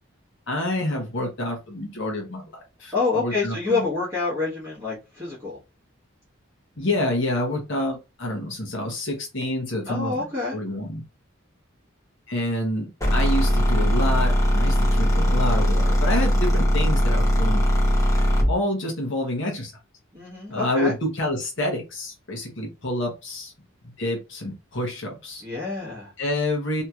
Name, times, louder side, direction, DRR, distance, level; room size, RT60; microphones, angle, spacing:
voice 1, 0.5-3.9 6.8-11.0 12.3-17.6 18.5-19.7 20.5-23.5 24.0-25.4 26.2-26.8, left 1 dB, 60° left, 0.9 m, -28 dB
voice 2, 2.9-5.6 9.9-10.6 20.1-20.9 25.4-26.1, left 4 dB, 15° right, 1.0 m, -27 dB
sound 1, 13.0-18.6, equal, 15° left, 0.8 m, -20 dB
2.9 x 2.8 x 2.4 m
head